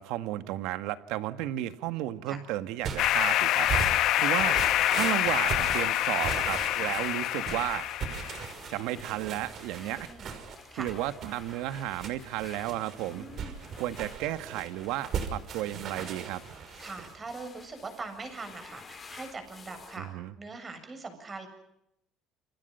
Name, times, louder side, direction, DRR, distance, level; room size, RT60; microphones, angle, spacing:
voice 1, 0.0-4.6 4.9-7.8 8.7-10.1 10.7-13.3 13.8-16.4 20.0-20.3, right 14 dB, 85° right, 11 dB, 1.8 m, -33 dB
sound 1, 2.8-17.2, right 7 dB, 50° right, 5.9 m, -38 dB
sound 2, 3.0-8.5, left 13 dB, 65° left, 1.3 m, -26 dB
sound 3, 4.4-20.0, left 5 dB, 30° left, 5.2 m, -52 dB
voice 2, 9.7-10.3 10.7-10.9 13.1-13.5 16.8-21.5, right 3 dB, 25° right, 8 dB, 7.6 m, -42 dB
29.5 x 25.5 x 5.8 m, 0.78 s
cardioid pair, 125°, 0 cm